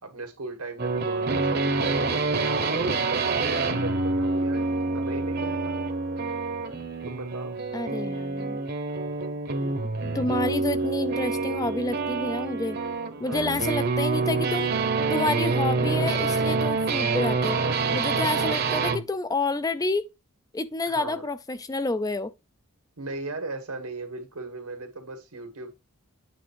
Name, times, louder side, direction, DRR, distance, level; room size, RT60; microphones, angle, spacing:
voice 1, 0.0-4.6 4.9-5.8 7.1-7.6 9.5-9.8 13.2-13.5 17.9-18.1 20.9-21.3 23.0-25.7, right 3 dB, 90° right, 2.1 m, -38 dB
sound 1, 0.8-19.0, right 3 dB, 45° right, 0.9 m, -26 dB
voice 2, 7.7-8.6 10.1-12.8 13.2-14.7 15.1-17.6 17.9-20.1 20.5-22.3, left 2 dB, 15° left, 0.4 m, -29 dB
8.8 x 3.5 x 4.6 m
head